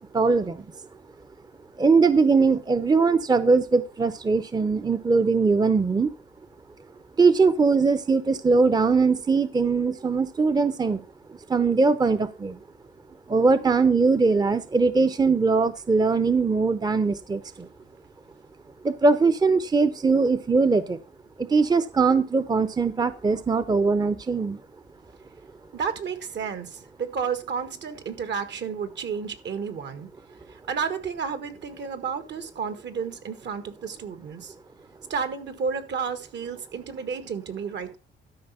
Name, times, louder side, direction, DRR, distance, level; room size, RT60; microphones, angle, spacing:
voice 1, 0.1-0.6 1.8-6.1 7.2-11.0 11.5-12.6 13.3-17.7 18.8-21.0 21.4-24.6, right 4 dB, 20° right, 0.7 m, -21 dB
voice 2, 25.7-30.1 30.5-34.5 35.1-38.0, right 6 dB, 60° right, 1.7 m, -31 dB
12.5 x 5.2 x 5.5 m
cardioid pair, 90°, 20 cm